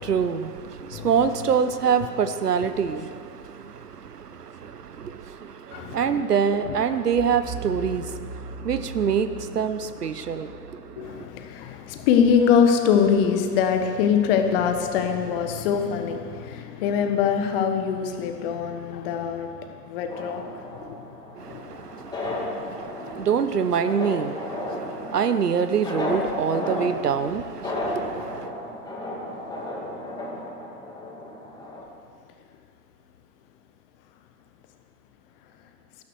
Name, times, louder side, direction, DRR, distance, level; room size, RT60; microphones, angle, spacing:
voice 1, 0.0-11.3 21.4-28.5, right 7 dB, 70° right, 1.1 m, -26 dB
voice 2, 5.7-6.2 6.6-6.8 11.0-19.6 19.9-20.4 20.7-21.0 21.5-21.6 22.3-22.5, left 7 dB, 35° left, 1.5 m, -23 dB
sound 1, 7.1-12.0, right 3 dB, 35° right, 2.0 m, -39 dB
sound 2, 20.1-31.8, left 1 dB, 10° left, 2.0 m, -33 dB
13.5 x 13.0 x 6.5 m
figure-of-eight pair, 115°, 48 cm